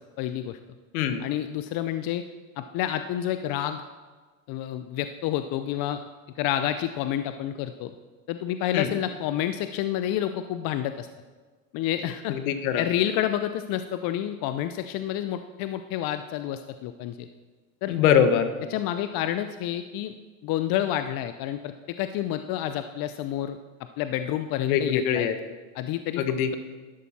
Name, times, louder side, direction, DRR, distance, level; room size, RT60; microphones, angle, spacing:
voice 1, 0.2-0.6 1.2-2.2 2.6-3.8 4.5-6.0 6.4-7.9 8.3-11.1 11.7-12.4 12.8-17.3 17.8-17.9 18.7-20.1 20.4-23.6 24.0-25.3 25.7-26.2, left 11 dB, 55° left, 10 dB, 0.7 m, -29 dB
voice 2, 12.3-12.8 17.9-18.5 24.6-25.3 26.2-26.6, left 8 dB, 75° left, 9 dB, 1.3 m, -23 dB
12.5 x 11.0 x 4.3 m, 1.3 s
hypercardioid pair, 85°, 42 cm